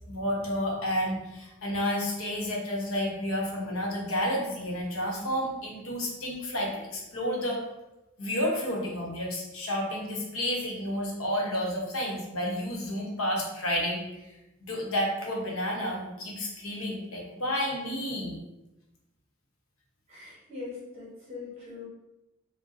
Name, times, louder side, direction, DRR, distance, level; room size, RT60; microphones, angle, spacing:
voice 1, 0.1-7.6 8.2-14.3 14.6-18.3, equal, 85° left, -2 dB, 0.9 m, -31 dB
voice 2, 20.1-21.9, left 4 dB, 30° right, -7 dB, 0.8 m, -41 dB
3.9 x 2.1 x 2.5 m, 0.98 s
head